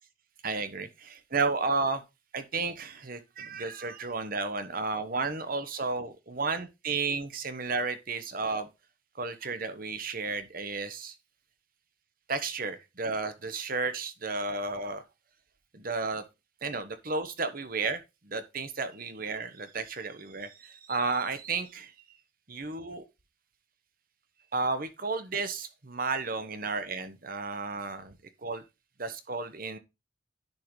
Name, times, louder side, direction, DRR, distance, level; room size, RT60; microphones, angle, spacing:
voice 1, 0.4-2.0 2.3-8.7 9.2-11.1 12.3-15.0 15.7-16.3 16.6-21.9 22.5-23.0 24.5-28.6 29.0-29.8, right 4 dB, 45° right, 1.1 m, -33 dB
10.5 x 5.6 x 3.2 m
head